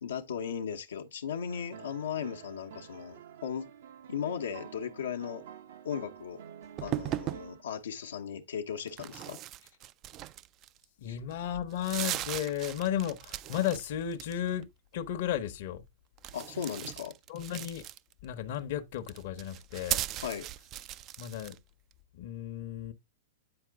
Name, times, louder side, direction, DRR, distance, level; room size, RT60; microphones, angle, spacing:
voice 1, 0.0-3.7 4.1-5.4 5.8-6.4 6.8-9.4 11.1-11.2 16.3-17.1 20.2-20.5, left 7 dB, 85° left, 0.9 m, -37 dB
sound 1, 1.5-7.8, right 9 dB, 70° right, 0.9 m, -49 dB
sound 2, 6.8-7.5 8.9-10.8 11.3-11.4 11.7-13.8 14.1-14.6 16.2-18.3 18.9-21.6, right 13 dB, 35° right, 0.4 m, -38 dB
voice 2, 11.0-14.6 14.9-15.8 17.3-17.9 18.2-20.0 21.2-21.6 22.2-22.9, left 10 dB, 60° left, 0.9 m, -34 dB
8.8 x 4.5 x 3.5 m
hypercardioid pair, 120°, 0 cm